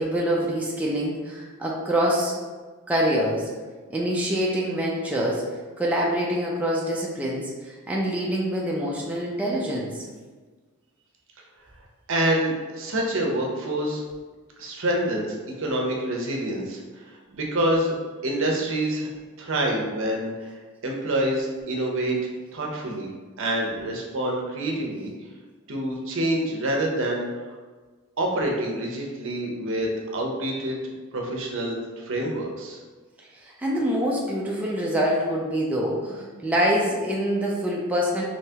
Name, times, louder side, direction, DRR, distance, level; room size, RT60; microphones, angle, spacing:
voice 1, 0.0-2.3 2.9-3.5 3.9-5.5 5.8-10.0 33.2-38.2, equal, 5° right, -4 dB, 0.4 m, -25 dB
voice 2, 12.1-14.0 14.6-17.9 18.2-19.1 19.4-20.5 20.8-23.1 23.4-25.1 25.7-27.3 28.2-30.8 31.1-32.8, right 1 dB, 65° right, 0 dB, 0.6 m, -27 dB
3.4 x 2.8 x 2.8 m, 1.4 s
head